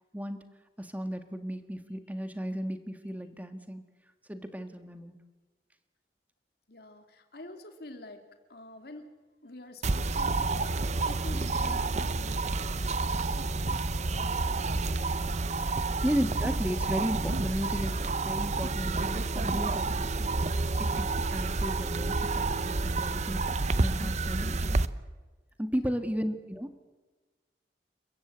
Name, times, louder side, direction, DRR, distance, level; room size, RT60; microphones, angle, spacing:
voice 1, 0.8-3.8 4.3-5.2 16.0-20.3 20.8-23.5 23.8-24.8 25.6-26.9, equal, 10° right, 9 dB, 1.6 m, -34 dB
voice 2, 6.7-8.2 8.5-9.1 9.4-13.8 14.1-15.5 15.8-16.1 25.8-26.0, left 1 dB, 60° left, 7 dB, 2.6 m, -48 dB
sound 1, 9.8-24.9, right 3 dB, 40° right, 0.8 m, -29 dB
29.0 x 15.0 x 8.7 m, 1.2 s
head